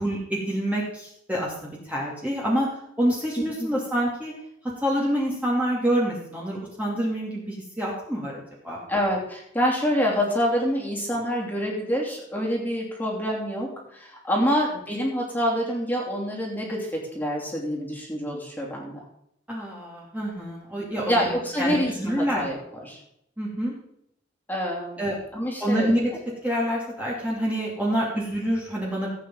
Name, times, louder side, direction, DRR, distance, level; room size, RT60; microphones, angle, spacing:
voice 1, 0.0-2.7 3.0-4.3 4.8-8.8 14.4-14.5 19.5-21.3 21.6-22.5 23.4-23.7 25.0-25.1 25.6-26.1 26.4-29.1, equal, 10° right, -5 dB, 2.6 m, -27 dB
voice 2, 8.9-19.1 21.1-23.0 24.5-25.0 25.3-26.2, equal, 10° left, -3 dB, 3.0 m, -27 dB
16.5 x 8.6 x 3.9 m, 0.74 s
head